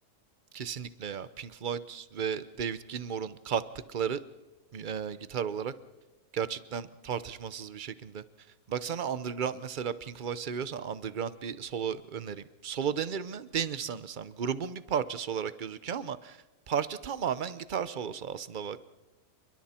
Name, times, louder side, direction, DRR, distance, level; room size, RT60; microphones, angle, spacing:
voice 1, 0.5-3.6 3.9-4.2 4.7-5.7 6.3-8.2 8.7-18.8, right 7 dB, 45° right, 15 dB, 0.7 m, -34 dB
29.0 x 22.5 x 4.4 m, 1.1 s
omnidirectional pair, 1.6 m